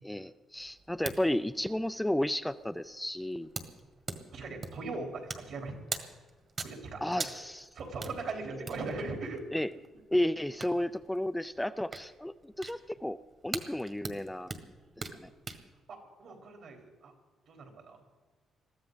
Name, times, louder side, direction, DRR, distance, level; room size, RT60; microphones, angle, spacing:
voice 1, 0.0-3.5 7.0-7.6 9.5-9.7 10.1-13.2 13.4-14.5 15.2-15.3, left 1 dB, 5° left, 12 dB, 0.4 m, -32 dB
sound 1, 0.5-15.6, right 4 dB, 40° right, 1.7 m, -45 dB
voice 2, 4.3-5.7 6.6-7.3 7.7-9.4 15.9-17.1 17.5-18.0, right 3 dB, 70° right, 2 dB, 3.8 m, -39 dB
21.5 x 14.0 x 4.0 m, 1.3 s
cardioid pair, 90°, 0 cm